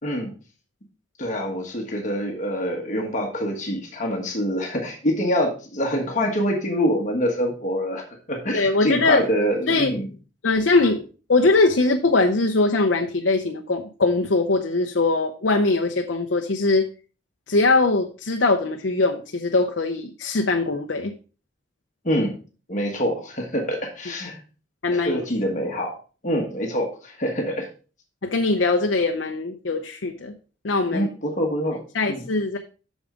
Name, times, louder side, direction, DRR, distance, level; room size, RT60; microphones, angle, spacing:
voice 1, 1.2-8.0 8.3-10.1 22.0-22.3 22.7-24.4 24.9-25.9 26.2-27.7 30.9-31.8 32.1-32.2, equal, 40° left, 1 dB, 1.4 m, -25 dB
voice 2, 8.5-9.3 9.7-9.9 10.4-16.9 17.5-21.1 24.8-25.2 28.2-30.3 30.6-31.1 31.9-32.6, left 3 dB, 70° left, 4 dB, 0.7 m, -21 dB
8.7 x 6.3 x 3.7 m, 0.36 s
head